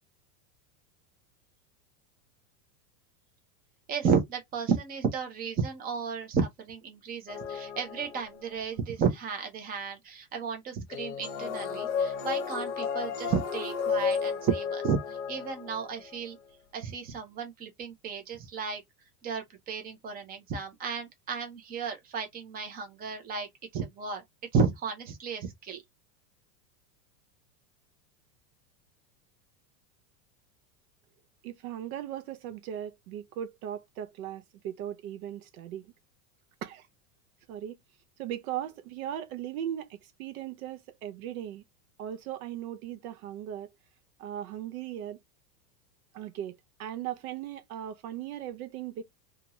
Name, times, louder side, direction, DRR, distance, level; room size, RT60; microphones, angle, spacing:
voice 1, 3.9-15.0 15.3-16.4 16.7-18.8 19.2-23.5 23.7-24.2 24.5-25.8, right 6 dB, 20° right, 0.6 m, -32 dB
sound 1, 7.3-8.6 10.9-16.2, left 6 dB, 50° left, 0.8 m, -33 dB
voice 2, 31.4-35.9 36.6-36.9 37.5-37.8 38.2-41.6 42.0-43.7 44.2-45.2 46.1-49.1, right 11 dB, 60° right, 0.5 m, -38 dB
2.6 x 2.4 x 2.9 m
supercardioid pair, 145°, 49 cm